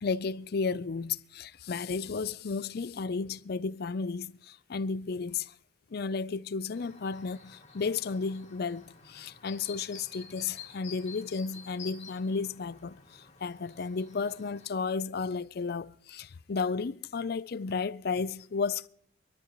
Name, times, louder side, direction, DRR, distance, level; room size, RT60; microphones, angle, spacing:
voice 1, 0.0-5.5 5.9-18.9, left 4 dB, 55° left, 0.5 m, -33 dB
Chirp tweet, 6.7-14.7, left 6 dB, 35° left, 2.6 m, -50 dB
23.0 x 13.0 x 3.0 m
head